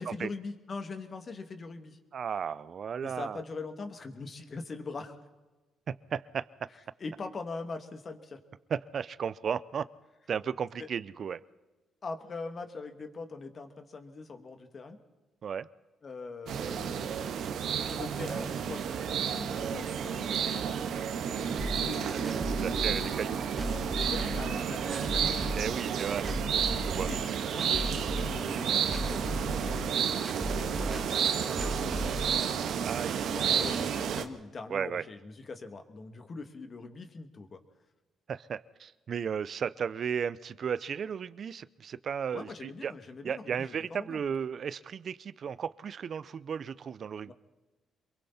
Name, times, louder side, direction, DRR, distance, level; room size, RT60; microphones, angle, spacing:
voice 1, 0.0-2.0 3.0-5.2 7.0-8.4 10.8-10.9 12.0-15.0 16.0-17.2 17.8-20.7 21.3-22.3 22.6-23.5 23.7-25.7 27.1-29.8 30.6-32.3 33.3-37.6 42.3-44.2 47.3-47.4, left 3 dB, 40° left, 6 dB, 2.5 m, -42 dB
voice 2, 2.1-3.4 5.9-6.5 8.7-9.9 10.3-11.4 15.4-15.7 22.6-23.4 25.6-26.3 26.8-27.1 30.8-31.0 32.8-33.3 34.7-35.0 38.3-42.9 43.2-47.3, right 7 dB, 55° right, 17 dB, 0.7 m, -34 dB
sound 1, 16.5-34.2, right 8 dB, 75° right, 1.6 m, -31 dB
sound 2, 21.6-32.2, equal, 20° right, 2.3 m, -36 dB
28.0 x 22.5 x 4.3 m, 1.2 s
cardioid pair, 90°, 0 cm